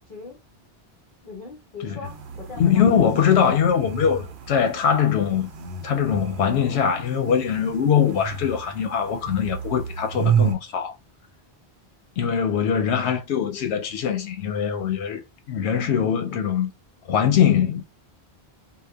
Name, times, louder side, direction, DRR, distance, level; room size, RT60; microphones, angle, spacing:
voice 1, 0.1-0.4 1.2-3.1, left 4 dB, 50° left, 0.9 m, -39 dB
sound 1, 2.0-10.5, right 6 dB, 80° right, 0.9 m, -31 dB
voice 2, 2.6-5.5 5.8-10.9 12.2-15.2 15.5-16.7 17.1-17.9, left 8 dB, 90° left, 0.9 m, -22 dB
2.8 x 2.1 x 2.2 m
omnidirectional pair, 1.1 m